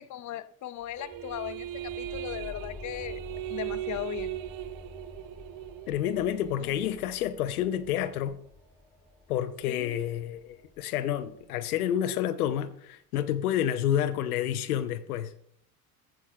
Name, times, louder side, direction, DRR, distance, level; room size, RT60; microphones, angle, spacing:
voice 1, 0.0-3.2 3.5-4.4 6.6-6.8 9.7-10.0, left 13 dB, 40° left, 0.8 m, -38 dB
sound 1, 0.8-12.0, left 2 dB, ahead, 4.2 m, -49 dB
sound 2, 1.0-6.8, right 15 dB, 50° right, 0.5 m, -38 dB
voice 2, 5.9-8.4 9.3-15.3, left 10 dB, 85° left, 0.6 m, -29 dB
15.5 x 6.1 x 2.4 m
hypercardioid pair, 70°, 43 cm